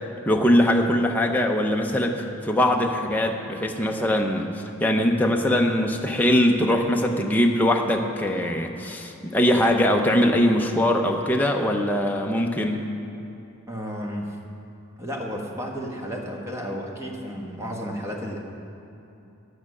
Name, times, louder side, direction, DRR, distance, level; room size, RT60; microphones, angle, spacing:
voice 1, 0.3-12.9, left 1 dB, 10° left, 1 dB, 0.6 m, -22 dB
voice 2, 13.7-14.4 15.0-18.4, equal, 15° right, 0 dB, 1.2 m, -32 dB
10.5 x 8.8 x 6.1 m, 2.9 s
head